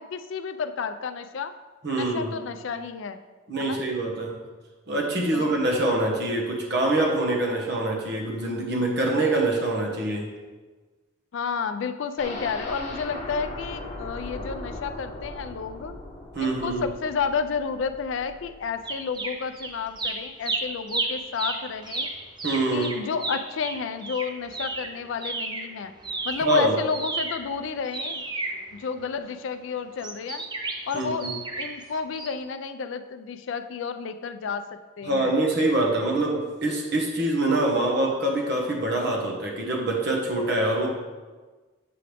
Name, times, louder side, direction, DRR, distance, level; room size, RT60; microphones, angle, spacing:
voice 1, 0.0-1.5 1.9-3.2 3.6-3.8 5.3-5.5 11.3-15.9 16.4-22.1 22.7-25.9 26.2-28.2 28.7-30.4 30.9-31.3 31.6-34.6 35.0-35.3, left 5 dB, 70° left, 9 dB, 0.4 m, -31 dB
voice 2, 1.8-2.3 3.5-4.3 4.9-10.3 16.3-16.8 22.4-23.0 26.4-26.7 30.9-31.4 35.0-40.9, right 2 dB, 55° right, -1 dB, 1.2 m, -25 dB
sound 1, 12.2-20.0 20.4-20.5 20.9-21.0, left 1 dB, 35° left, 1.0 m, -39 dB
sound 2, 18.9-19.7 20.0-25.7 26.0-29.3 30.0-31.8 32.1-32.3, right 3 dB, 20° right, 0.6 m, -32 dB
7.7 x 4.9 x 3.4 m, 1.3 s
head